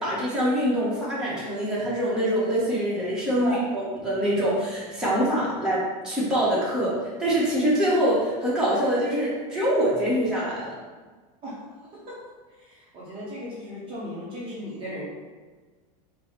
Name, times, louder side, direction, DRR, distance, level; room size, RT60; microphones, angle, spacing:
voice 1, 0.0-10.7, equal, 5° right, -9 dB, 1.4 m, -24 dB
voice 2, 12.5-15.0, equal, 25° right, -7 dB, 1.1 m, -35 dB
4.7 x 2.5 x 4.5 m, 1.4 s
supercardioid pair, 145°, 19 cm